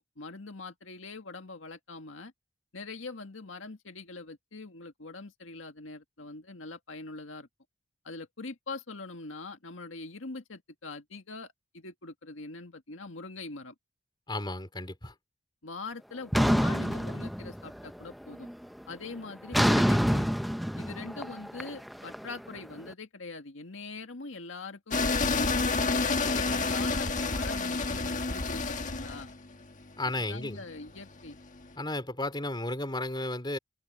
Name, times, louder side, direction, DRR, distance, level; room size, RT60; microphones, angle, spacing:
voice 1, 0.0-2.3 2.7-7.5 8.0-13.7 15.6-18.5 18.9-20.3 20.7-29.3 30.0-31.4, left 3 dB, 85° left, 1.8 m, -43 dB
voice 2, 14.3-15.1 30.0-30.6 31.8-33.6, left 2 dB, 25° left, 3.4 m, -33 dB
sound 1, 16.3-17.9 18.2-18.6 19.5-22.6, equal, ahead, 0.6 m, -27 dB
sound 2, 24.9-31.6, left 3 dB, 40° left, 1.5 m, -29 dB
head